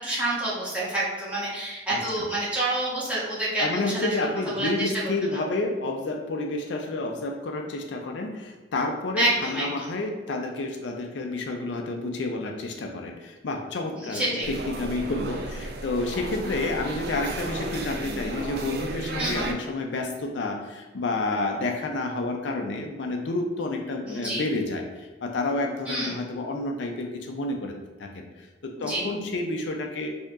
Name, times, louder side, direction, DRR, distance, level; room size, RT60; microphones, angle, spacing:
voice 1, 0.0-4.1 4.5-4.9 5.3-5.4 9.2-9.9 13.9-14.5 19.2-19.5 24.0-24.4 25.9-26.1 28.8-29.1, right 1 dB, 10° right, -9 dB, 1.2 m, -28 dB
voice 2, 1.9-2.2 3.6-27.7 28.0-28.5 28.8-30.1, left 2 dB, 75° left, 3 dB, 0.4 m, -30 dB
sound 1, 14.4-19.5, right 2 dB, 60° right, 0.4 m, -34 dB
4.4 x 2.8 x 2.5 m, 1.2 s
head